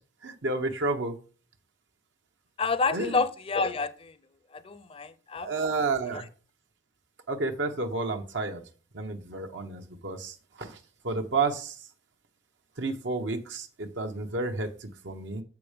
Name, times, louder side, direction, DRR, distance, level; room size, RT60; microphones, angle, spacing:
voice 1, 0.2-1.2 2.9-3.2 5.4-6.3 7.3-8.6 8.9-10.8 11.0-11.7 12.8-15.4, right 3 dB, 80° right, 1.0 m, -31 dB
voice 2, 2.6-4.1 4.5-5.5, left 4 dB, 30° left, 0.5 m, -28 dB
7.2 x 5.9 x 5.1 m
head